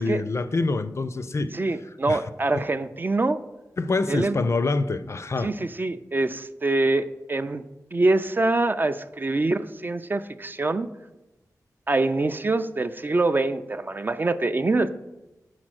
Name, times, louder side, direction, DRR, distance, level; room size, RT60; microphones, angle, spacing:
voice 1, 0.0-1.5 2.1-2.2 3.8-5.5, left 3 dB, 45° left, 0.4 m, -25 dB
voice 2, 1.5-3.4 4.1-4.4 5.4-7.6 7.9-10.9 11.9-14.9, right 2 dB, 30° right, 0.3 m, -24 dB
6.3 x 4.1 x 6.2 m
wide cardioid pair, 85°, 6 cm